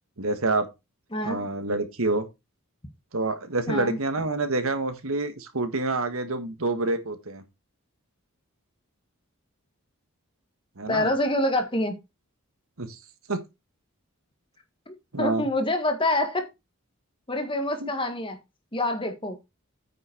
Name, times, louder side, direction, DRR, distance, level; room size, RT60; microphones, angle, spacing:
voice 1, 0.2-0.7 1.2-2.3 3.1-7.4 10.8-11.1 12.8-12.9 13.3-13.4 15.1-15.5 17.8-17.9, right 2 dB, 70° right, 1.6 m, -27 dB
voice 2, 1.1-1.5 3.7-4.0 10.9-12.0 14.9-16.5 17.3-18.4 18.7-19.4, left 1 dB, 25° left, 1.7 m, -26 dB
9.1 x 6.2 x 4.5 m
head